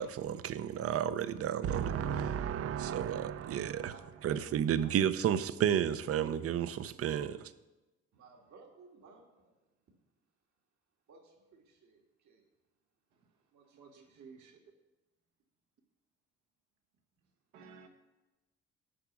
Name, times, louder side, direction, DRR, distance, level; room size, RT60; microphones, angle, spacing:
voice 1, 0.0-3.9 4.2-7.5, right 9 dB, 50° right, 0.6 m, -32 dB
voice 2, 3.9-5.2 8.1-9.5 11.1-12.4 13.5-14.3, right 5 dB, 70° right, 1.8 m, -57 dB
voice 3, 13.7-14.6 17.5-17.9, right 5 dB, 85° right, 1.4 m, -54 dB
8.6 x 5.9 x 7.2 m
cardioid pair, 90°, 30 cm